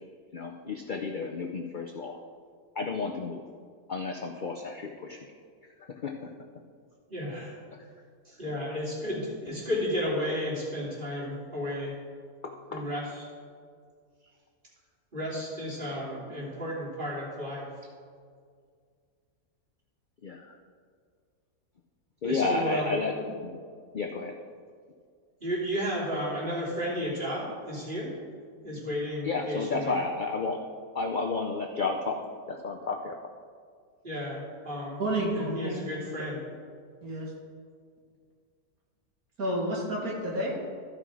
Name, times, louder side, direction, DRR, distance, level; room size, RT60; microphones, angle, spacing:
voice 1, 0.3-2.2 2.8-3.5 3.9-5.2 5.9-6.1 12.4-12.8 20.2-20.5 22.2-23.1 23.4-23.5 23.9-24.3 29.2-30.6 30.9-33.2, left 4 dB, 55° left, 2 dB, 0.5 m, -31 dB
voice 2, 7.1-7.6 8.2-11.9 12.7-13.2 15.1-17.7 22.2-23.0 25.4-28.1 28.6-30.0 34.0-35.0 35.3-36.4, equal, 35° right, -7 dB, 3.2 m, -33 dB
voice 3, 35.0-35.7 37.0-37.3 39.4-40.6, right 1 dB, 70° right, -3 dB, 2.4 m, -30 dB
13.5 x 5.8 x 4.8 m, 2.1 s
omnidirectional pair, 1.6 m